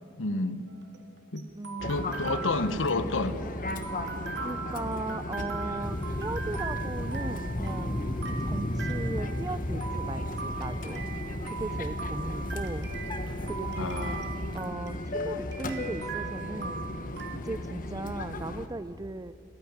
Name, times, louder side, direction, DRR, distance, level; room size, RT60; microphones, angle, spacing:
voice 1, 0.2-0.7 1.3-1.5 1.8-3.4 13.8-14.3, left 2 dB, 75° left, 12 dB, 1.1 m, -30 dB
sound 1, 0.7-17.4, right 5 dB, 60° right, 2.2 m, -40 dB
voice 2, 1.5-2.3 4.4-11.0 11.4-12.9 13.4-14.2 14.5-16.9 17.3-19.3, right 2 dB, 20° right, 15 dB, 0.4 m, -38 dB
Fixed-wing aircraft airplane, 1.8-18.7, left 1 dB, 45° left, 1.3 m, -37 dB
sound 2, 5.8-14.7, left 1 dB, 25° left, 0.8 m, -35 dB
30.0 x 10.5 x 9.3 m, 2.7 s
head